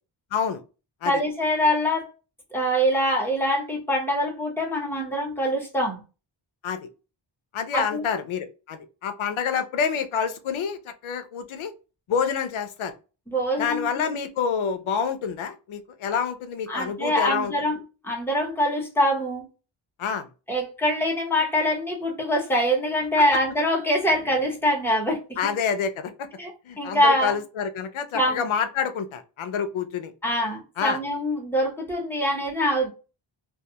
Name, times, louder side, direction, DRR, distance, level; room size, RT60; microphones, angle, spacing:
voice 1, 0.3-0.6 1.0-1.1 6.6-6.9 7.5-11.7 12.1-12.9 13.6-17.5 20.0-20.3 25.4-26.3 26.6-30.1 30.8-31.0, left 7 dB, 90° left, 0.6 m, -28 dB
voice 2, 1.0-2.1 2.5-6.0 7.7-8.1 13.3-13.9 16.7-19.5 20.5-25.5 26.4-26.5 26.8-27.4 28.1-28.4 30.2-32.9, equal, 5° left, 0.9 m, -24 dB
2.3 x 2.3 x 2.7 m
wide cardioid pair, 135°, 48 cm